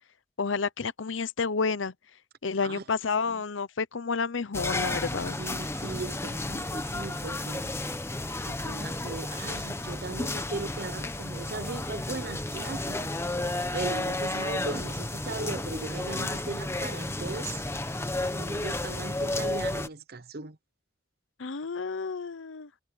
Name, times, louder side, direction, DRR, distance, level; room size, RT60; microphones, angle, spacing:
voice 1, 0.4-1.9 2.4-5.4 21.4-22.7, left 4 dB, 85° left, 0.8 m, -30 dB
sound 1, 4.5-19.9, left 2 dB, 15° left, 1.1 m, -32 dB
voice 2, 5.4-7.7 8.4-13.1 13.4-17.6 18.2-20.6, right 3 dB, 55° right, 0.8 m, -38 dB
Fill (with liquid), 6.8-19.9, equal, 5° right, 7.0 m, -54 dB
head